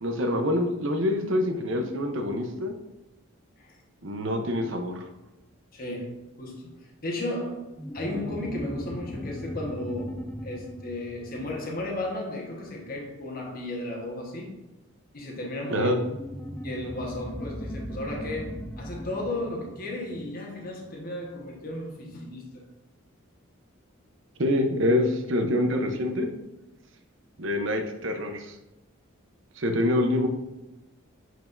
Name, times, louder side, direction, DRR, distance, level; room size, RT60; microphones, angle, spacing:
voice 1, 0.0-2.7 4.0-5.0 15.7-16.0 24.4-26.3 27.4-28.5 29.6-30.3, left 1 dB, 60° right, 5 dB, 0.9 m, -26 dB
voice 2, 5.7-14.6 15.1-15.9 16.6-22.7, left 1 dB, 45° left, 0 dB, 1.2 m, -34 dB
sound 1, 7.8-12.7 16.1-21.0, equal, 10° left, 0.3 m, -38 dB
7.8 x 4.6 x 2.6 m, 1.0 s
head